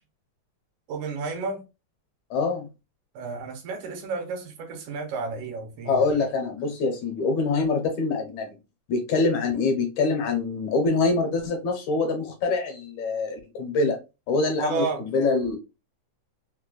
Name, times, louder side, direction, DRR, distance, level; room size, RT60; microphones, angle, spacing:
voice 1, 0.9-1.6 3.1-6.0 14.6-15.1, right 4 dB, 75° right, 2.3 m, -31 dB
voice 2, 2.3-2.7 5.9-8.5 8.9-14.0 14.3-14.9 15.1-15.6, left 3 dB, 70° left, 2.1 m, -24 dB
5.2 x 2.2 x 2.3 m
omnidirectional pair, 3.6 m